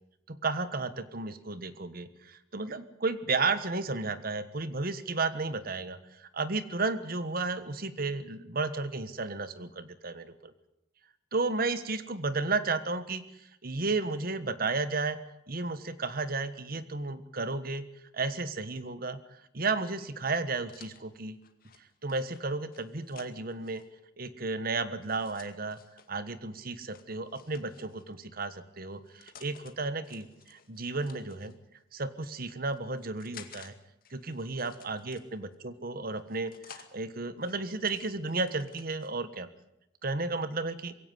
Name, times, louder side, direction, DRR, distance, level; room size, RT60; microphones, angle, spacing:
voice 1, 0.3-10.5 11.3-15.2 15.5-17.9 18.1-19.2 19.5-21.4 22.0-23.8 24.2-25.8 26.1-31.5 31.9-33.7 34.1-39.5 40.0-40.9, right 3 dB, 50° right, 13 dB, 1.4 m, -33 dB
sound 1, 19.7-23.9 25.0-26.1 26.9-28.1 28.9-29.7 30.0-31.6 32.2-33.7 34.0-35.5 36.1-36.9 37.4-39.1, left 7 dB, 50° left, 2.2 m, -54 dB
22.0 x 17.0 x 9.8 m, 0.84 s
head